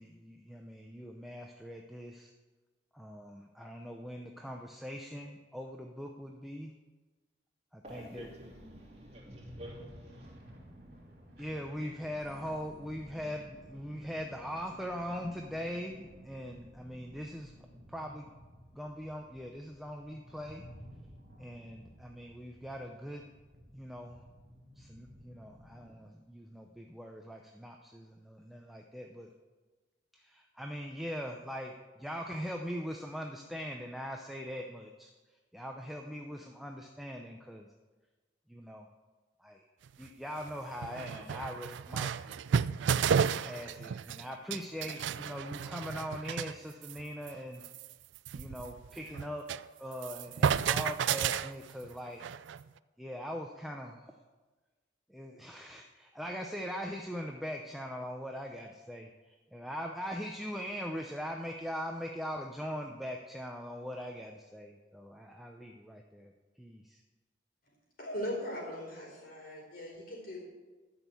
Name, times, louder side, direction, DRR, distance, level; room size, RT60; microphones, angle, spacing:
voice 1, 0.0-2.3 2.9-6.7 7.7-8.3 11.4-17.5 17.9-18.3 18.7-20.6 21.4-23.2 23.7-24.2 24.8-29.3 30.1-31.7 32.0-35.1 35.5-37.7 38.5-38.9 39.4-39.6 40.0-42.4 43.2-47.6 48.3-49.4 49.8-52.2 53.0-54.0 55.1-59.1 59.5-66.3 66.6-67.0, equal, ahead, 2 dB, 0.6 m, -41 dB
voice 2, 7.8-8.6 8.9-10.3, equal, 35° right, -2 dB, 2.7 m, -50 dB
sound 1, 7.8-26.0, equal, 50° right, 2.7 m, -54 dB
sound 2, 39.9-40.0 40.5-40.6 40.8-44.2 44.5-46.5 46.8-47.0 47.3-47.4 47.6-49.7 49.9-52.6, right 7 dB, 75° right, 0.3 m, -32 dB
voice 3, 68.0-70.4, left 1 dB, 50° left, -3 dB, 4.4 m, -39 dB
12.5 x 6.3 x 8.3 m, 1.3 s
head